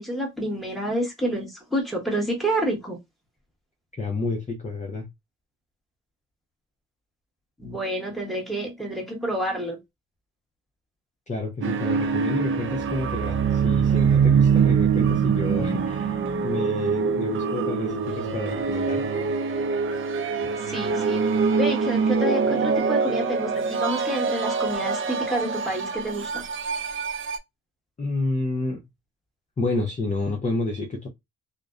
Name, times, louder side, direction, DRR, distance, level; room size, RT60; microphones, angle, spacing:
voice 1, 0.0-3.0 7.6-9.8 20.4-26.4, right 1 dB, ahead, 1.2 m, -29 dB
voice 2, 4.0-5.1 11.3-19.1 28.0-28.8 29.6-31.1, left 2 dB, 25° left, 0.6 m, -30 dB
sound 1, 11.6-27.4, right 5 dB, 45° right, 0.5 m, -24 dB
2.4 x 2.1 x 2.4 m
cardioid pair, 90°, 30 cm